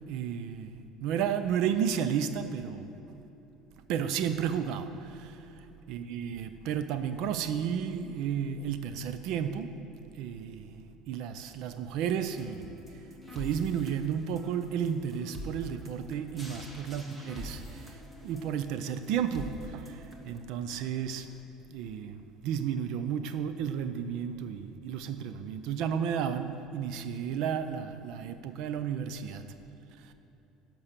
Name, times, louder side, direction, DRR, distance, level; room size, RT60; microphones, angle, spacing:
voice 1, 0.0-2.9 3.9-5.4 5.9-9.8 10.2-12.8 13.3-18.0 18.2-21.3 21.7-22.2 22.4-29.5 30.0-30.1, right 8 dB, 65° right, 10 dB, 0.5 m, -32 dB
sound 1, 12.4-20.4, equal, 10° right, 1.2 m, -46 dB
11.0 x 6.0 x 6.7 m, 2.9 s
cardioid pair, 150°, 0 cm